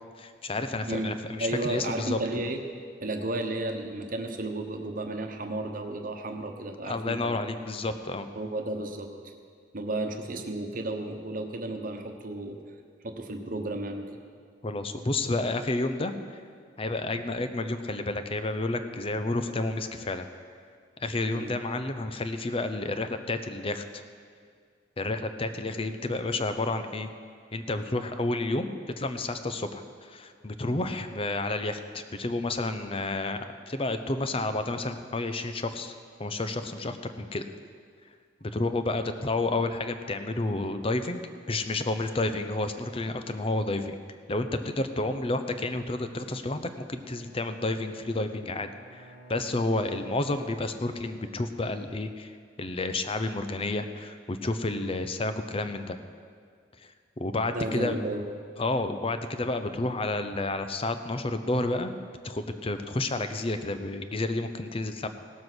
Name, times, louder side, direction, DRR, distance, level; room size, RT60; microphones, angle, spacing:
voice 1, 0.2-2.2 6.8-8.3 14.6-16.4 16.8-20.3 21.0-23.8 25.0-27.1 27.5-28.7 29.0-35.9 36.2-37.5 38.4-41.2 41.5-44.0 44.3-56.0 56.8-57.9 58.6-61.9 62.2-65.1, left 2 dB, 30° left, 9 dB, 0.7 m, -30 dB
voice 2, 1.4-2.6 3.0-7.4 8.3-9.3 9.7-12.6 13.0-14.1 21.3-21.5 57.5-58.2, right 2 dB, 50° right, 5 dB, 1.1 m, -33 dB
Bowed string instrument, 46.8-51.1, right 2 dB, 70° left, 2.3 m, -51 dB
17.5 x 7.5 x 6.2 m, 2.1 s
head